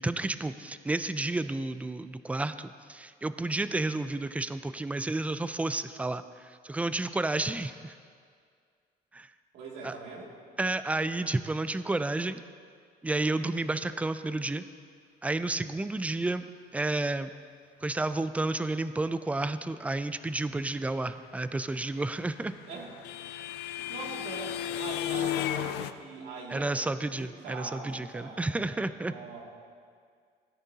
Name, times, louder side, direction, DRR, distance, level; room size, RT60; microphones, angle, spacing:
voice 1, 0.0-6.2 6.6-7.9 9.1-9.3 9.8-9.9 10.6-12.4 13.0-14.6 15.2-16.4 16.7-17.3 17.8-22.5 26.5-29.1, right 2 dB, 10° right, 12 dB, 0.4 m, -31 dB
voice 2, 9.5-10.3 22.7-23.0 23.7-29.4, right 4 dB, 85° right, -3 dB, 2.5 m, -43 dB
sound 1, 22.0-25.9, left 11 dB, 80° left, 0.5 m, -34 dB
17.0 x 10.0 x 2.8 m, 2.1 s
cardioid pair, 110°, 17 cm